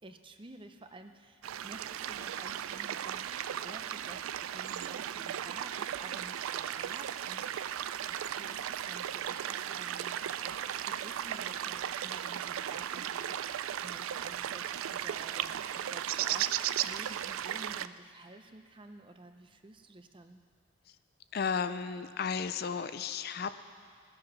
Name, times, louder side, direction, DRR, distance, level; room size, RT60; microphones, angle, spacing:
voice 1, 0.0-20.4, right 2 dB, 25° right, 7 dB, 0.6 m, -52 dB
sound 1, 1.4-17.9, right 10 dB, 85° right, 0.3 m, -36 dB
voice 2, 21.3-23.6, left 6 dB, 50° left, 11 dB, 0.4 m, -34 dB
18.5 x 7.7 x 6.0 m, 2.1 s
head